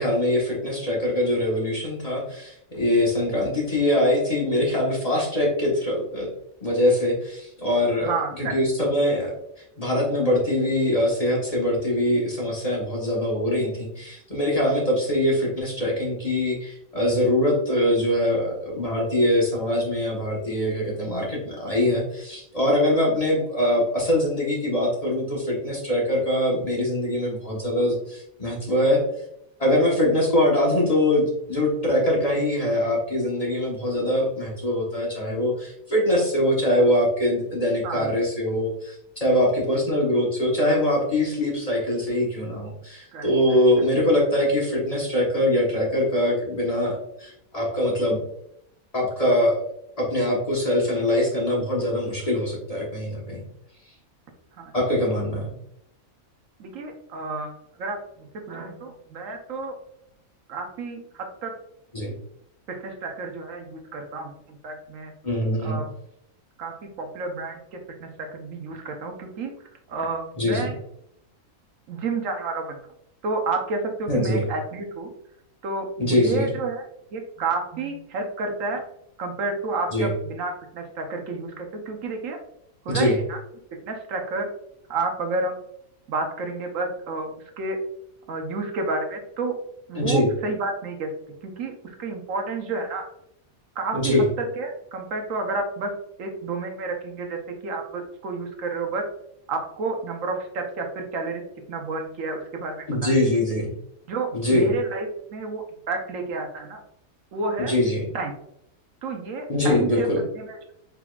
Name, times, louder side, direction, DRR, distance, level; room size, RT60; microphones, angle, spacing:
voice 1, 0.0-6.3 6.6-8.1 8.4-9.3 9.8-29.0 29.6-48.2 48.9-49.6 50.0-53.4 54.7-55.5 61.9-62.1 65.2-65.8 70.4-70.7 74.1-74.5 76.0-76.5 79.9-80.1 82.9-83.2 89.9-90.3 93.9-94.3 102.9-103.7 104.3-104.7 107.6-108.0 109.5-110.2, left 1 dB, 30° left, -4 dB, 1.1 m, -23 dB
voice 2, 8.0-8.6 37.8-38.1 43.1-43.3 54.6-54.7 56.6-57.5 57.8-59.7 60.5-61.6 62.7-65.1 65.6-65.9 66.6-69.5 69.9-70.7 71.9-72.8 73.2-75.1 75.6-76.8 77.1-78.8 79.2-82.4 82.8-83.4 83.8-84.5 84.9-85.5 86.1-87.3 87.6-87.8 88.3-89.5 89.9-91.1 91.4-93.1 93.8-95.9 96.2-99.1 99.5-101.4 101.7-103.1 104.1-106.8 107.3-107.7 108.1-108.3 109.0-110.1 110.4-110.7, right 3 dB, 70° right, 3 dB, 1.1 m, -30 dB
4.9 x 3.5 x 2.3 m, 0.74 s
omnidirectional pair, 1.5 m